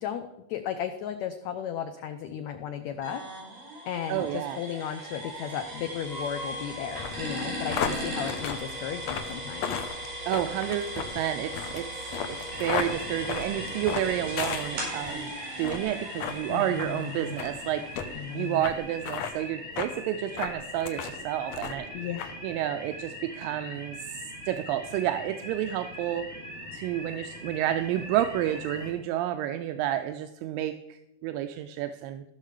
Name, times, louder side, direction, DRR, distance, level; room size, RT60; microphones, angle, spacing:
voice 1, 0.0-3.2 3.9-9.8 16.5-17.3 18.2-18.7 21.9-22.4, left 9 dB, 90° left, 9 dB, 1.6 m, -35 dB
sound 1, 3.0-18.7, right 1 dB, 60° right, 5.8 m, -38 dB
voice 2, 4.1-4.6 10.3-12.1 12.6-21.9 22.4-24.2 24.5-26.3 26.7-32.2, right 12 dB, 85° right, 8 dB, 2.3 m, -30 dB
sound 2, 7.0-15.2 15.6-15.9 16.2-16.4 16.8-16.9 17.4-17.5 18.0-18.1 18.6-18.7 19.0-19.3 19.8-19.9 20.4-21.2 21.5-21.9 22.2-22.3, left 8 dB, 70° left, 1.7 m, -34 dB
sound 3, 12.5-28.9, left 1 dB, 5° left, 3.3 m, -41 dB
15.0 x 6.6 x 4.9 m, 0.91 s
omnidirectional pair, 4.0 m